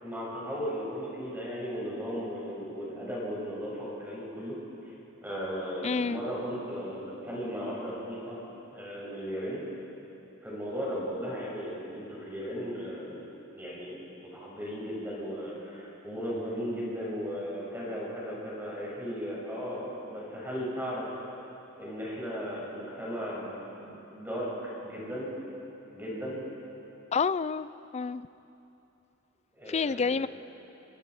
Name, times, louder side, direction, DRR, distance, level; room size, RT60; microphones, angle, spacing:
voice 1, 0.0-4.6 5.2-8.4 8.7-9.6 10.4-13.2 13.6-14.0 14.3-21.2 21.8-23.5 23.8-25.3 25.9-26.4 29.5-30.2, equal, 10° right, -6 dB, 6.2 m, -36 dB
voice 2, 5.8-6.2 27.1-27.7 27.9-28.3 29.7-30.3, left 5 dB, 30° left, 16 dB, 0.4 m, -28 dB
29.0 x 24.0 x 4.8 m, 3.0 s
head